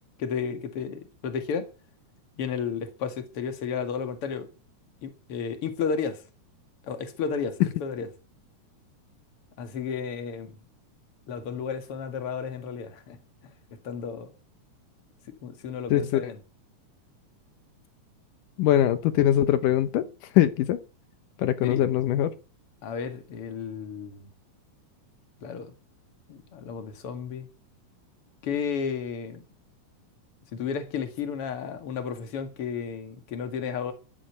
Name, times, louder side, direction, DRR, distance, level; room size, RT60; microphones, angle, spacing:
voice 1, 0.2-1.7 2.4-4.5 5.0-6.2 6.8-8.1 9.6-10.6 11.3-13.2 13.8-14.3 15.4-16.4 21.6-21.9 22.8-24.3 25.4-25.7 26.3-27.5 28.4-29.4 30.5-33.9, left 6 dB, 45° left, 2.7 m, -32 dB
voice 2, 15.9-16.2 18.6-20.1 20.3-20.8 21.4-22.3, left 12 dB, 80° left, 2.6 m, -22 dB
12.5 x 11.0 x 8.1 m
omnidirectional pair, 3.7 m